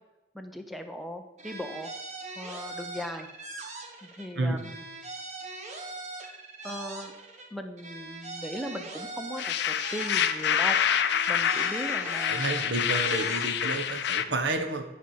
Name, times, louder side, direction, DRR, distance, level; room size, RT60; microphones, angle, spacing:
voice 1, 0.3-1.9 2.4-3.3 4.0-4.8 6.6-7.1 7.5-10.8 11.3-12.6, equal, ahead, 6 dB, 0.7 m, -38 dB
sound 1, 1.4-4.3 4.6-7.5 7.8-10.7 11.0-13.9, right 2 dB, 40° right, 1.2 m, -41 dB
sound 2, 9.4-14.2, left 8 dB, 65° left, 0.5 m, -27 dB
voice 2, 12.3-14.8, right 2 dB, 70° right, 7 dB, 1.0 m, -30 dB
10.0 x 4.9 x 5.6 m, 1.1 s
head